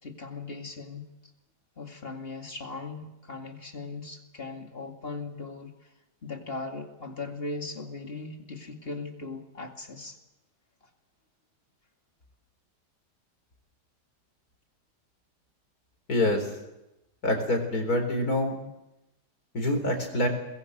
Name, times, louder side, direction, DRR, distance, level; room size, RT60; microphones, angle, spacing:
voice 1, 0.0-1.1 1.8-5.9 6.2-10.2 10.8-10.9, left 3 dB, 35° left, 4 dB, 2.5 m, -39 dB
voice 2, 16.1-16.5 17.2-18.6 19.5-20.3, left 1 dB, 60° left, 5 dB, 4.6 m, -26 dB
23.0 x 21.0 x 8.0 m, 0.94 s
omnidirectional pair, 1.8 m